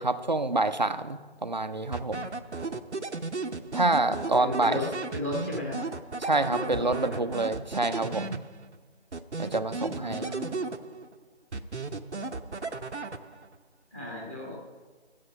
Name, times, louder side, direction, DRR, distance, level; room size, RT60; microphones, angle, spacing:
voice 1, 0.0-2.3 3.7-4.8 6.2-8.4 9.4-10.3, right 2 dB, 40° right, 10 dB, 0.6 m, -27 dB
sound 1, 1.9-8.8 9.1-11.2 11.5-13.6, right 3 dB, 85° right, 0.9 m, -35 dB
voice 2, 4.0-4.9 5.1-5.8 6.4-7.2 9.8-10.5 13.9-14.6, left 1 dB, 10° left, -3 dB, 1.2 m, -35 dB
13.5 x 7.9 x 5.6 m, 1.4 s
figure-of-eight pair, 160°, 33 cm